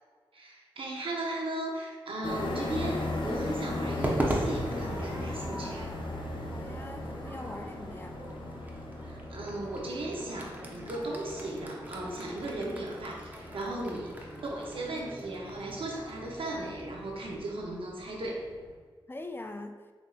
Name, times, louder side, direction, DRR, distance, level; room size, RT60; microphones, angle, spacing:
voice 1, 0.3-5.9 9.1-14.2 14.4-18.4, right 2 dB, 75° right, -1 dB, 0.7 m, -36 dB
sound 1, 2.2-18.7, left 2 dB, 65° left, 0.6 m, -39 dB
Crowd / Fireworks, 4.0-18.4, right 1 dB, 20° right, 0.7 m, -39 dB
voice 2, 6.5-8.2 13.8-14.0 19.1-19.8, left 2 dB, 25° left, 6 dB, 0.3 m, -42 dB
sound 2, 9.4-17.4, right 1 dB, 50° right, 1.1 m, -50 dB
6.0 x 2.6 x 2.4 m, 1.5 s
cardioid pair, 55°, 9 cm